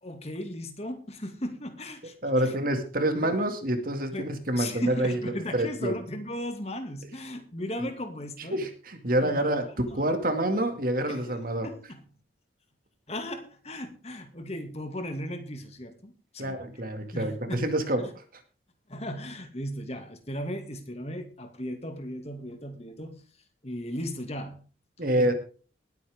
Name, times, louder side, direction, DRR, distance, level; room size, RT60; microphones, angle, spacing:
voice 1, 0.0-2.1 2.4-2.5 3.1-3.3 4.1-4.3 4.5-8.7 9.2-9.6 9.9-10.1 11.1-11.3 11.6-12.0 13.1-16.6 17.1-17.7 18.9-23.2 23.6-24.6 25.0-25.3, left 1 dB, 35° left, 2.2 m, -36 dB
voice 2, 2.2-5.9 7.8-7.9 8.5-11.7 16.4-18.2 25.0-25.3, right 1 dB, 50° right, 2.3 m, -27 dB
20.0 x 9.2 x 3.6 m
head